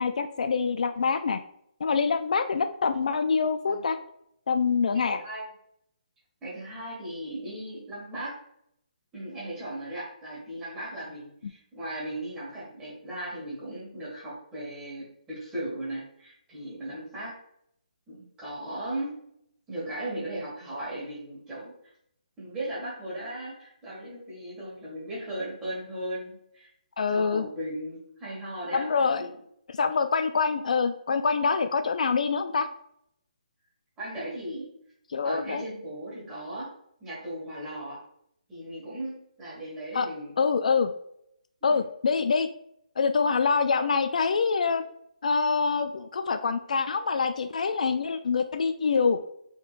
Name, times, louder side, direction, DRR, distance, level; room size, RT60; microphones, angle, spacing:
voice 1, 0.0-1.4 1.8-4.0 4.5-5.2 27.0-27.5 28.7-29.2 29.8-32.7 35.1-35.6 39.9-40.1 40.4-40.9 41.6-42.5 43.0-44.8 45.2-49.2, left 5 dB, 60° left, 9 dB, 0.3 m, -25 dB
voice 2, 4.9-5.4 6.4-8.4 9.1-17.4 18.1-19.1 19.7-21.7 22.4-26.7 27.1-29.3 34.0-34.7 35.2-36.7 37.0-38.0 38.5-40.3 41.6-41.8, right 1 dB, 10° right, -8 dB, 1.7 m, -37 dB
5.2 x 3.7 x 2.5 m, 0.72 s
hypercardioid pair, 170°, 4 cm